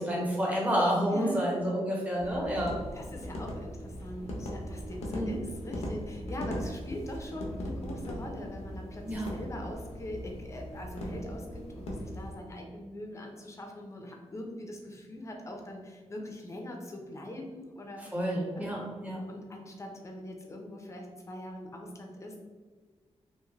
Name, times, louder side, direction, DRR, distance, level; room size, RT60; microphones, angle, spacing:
voice 1, 0.0-2.7 5.1-5.4 9.1-9.3 18.0-19.2, equal, 15° right, -4 dB, 0.9 m, -29 dB
voice 2, 1.1-1.7 2.9-18.1 18.6-18.9 19.3-22.4, left 1 dB, 25° left, 1 dB, 0.5 m, -42 dB
sound 1, 2.2-12.3, equal, 85° left, 0.6 m, -39 dB
3.1 x 2.6 x 2.4 m, 1.5 s
wide cardioid pair, 115°, 11 cm